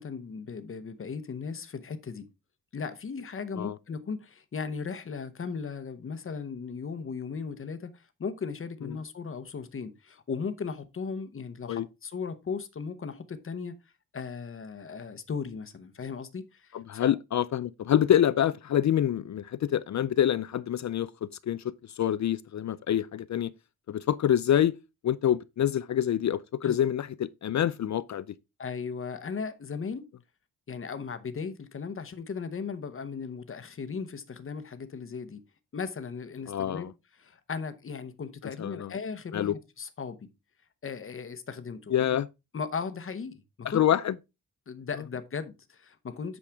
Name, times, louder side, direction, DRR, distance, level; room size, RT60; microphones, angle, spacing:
voice 1, 0.0-2.3 2.7-13.7 14.1-17.1 26.6-26.8 28.6-30.1 30.7-35.4 35.7-36.9 37.1-40.3 40.8-42.2 42.5-43.8 44.7-46.4, left 5 dB, 35° left, 0.9 m, -37 dB
voice 2, 16.7-21.1 21.4-21.6 22.0-23.5 23.9-24.7 25.0-28.2 36.5-36.9 38.6-38.9 39.3-39.5 41.9-42.3 43.7-44.1, left 10 dB, 55° left, 0.4 m, -26 dB
8.6 x 6.4 x 3.4 m
wide cardioid pair, 165°, 35 cm